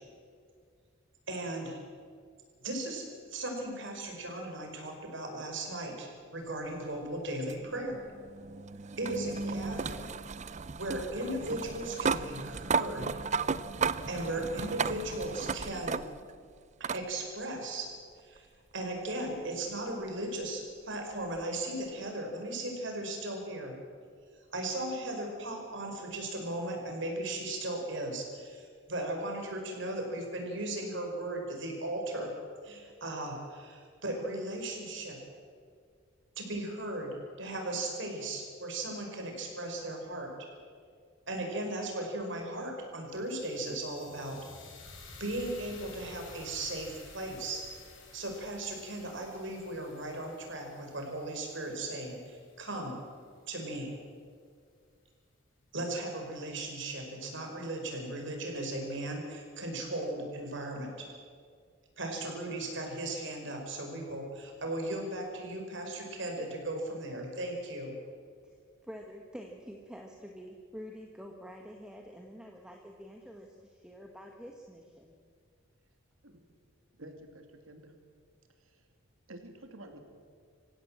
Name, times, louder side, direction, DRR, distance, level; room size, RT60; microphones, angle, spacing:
voice 1, 1.3-1.8 2.6-8.0 9.0-10.1 10.7-13.2 14.1-16.0 16.9-17.9 18.2-18.5 18.7-23.7 24.5-32.3 32.6-35.2 36.4-40.3 41.3-44.4 45.1-47.6 48.1-53.0 53.5-53.9 55.7-61.1 62.0-67.9, right 1 dB, 60° right, 2 dB, 5.3 m, -37 dB
sound 1, 7.5-16.4 16.8-17.0 18.4-18.5 21.3-21.4, right 5 dB, 35° right, 0.5 m, -34 dB
sound 2, 43.1-53.3, left 3 dB, 65° left, 5.2 m, -53 dB
voice 2, 68.8-75.1, equal, 5° right, 1 dB, 1.5 m, -47 dB
voice 3, 77.0-77.9 78.6-78.9 79.3-80.0, right 1 dB, 85° right, 5 dB, 2.7 m, -50 dB
27.0 x 16.0 x 7.6 m, 2.1 s
head